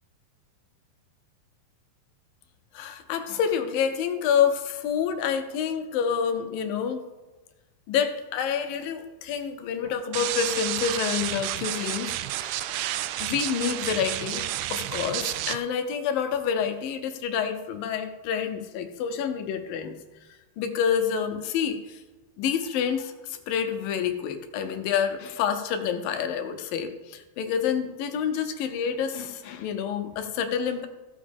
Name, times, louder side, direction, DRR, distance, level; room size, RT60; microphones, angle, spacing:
voice 1, 2.7-7.0 7.9-12.6 13.2-20.0 20.6-22.0 22.4-30.9, left 7 dB, 75° left, 7 dB, 2.5 m, -28 dB
sound 1, 10.1-15.6, right 14 dB, 80° right, 2.1 m, -30 dB
15.0 x 7.4 x 3.6 m, 1.2 s
omnidirectional pair, 4.3 m